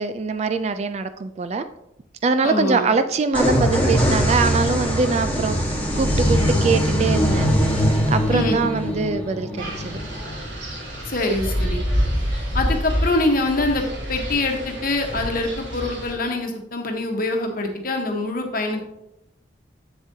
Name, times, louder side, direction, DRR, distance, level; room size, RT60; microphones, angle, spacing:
voice 1, 0.0-1.6 2.2-7.5 8.1-10.0, right 4 dB, 35° right, 11 dB, 0.3 m, -23 dB
voice 2, 2.4-2.9 8.3-8.6 11.1-11.8 12.5-18.8, left 2 dB, 50° left, 3 dB, 1.1 m, -24 dB
sound 1, 3.3-10.9, equal, 10° left, 1.3 m, -21 dB
Wind, 9.6-16.1, equal, 65° right, 3.0 m, -27 dB
7.9 x 7.2 x 2.7 m, 0.85 s
head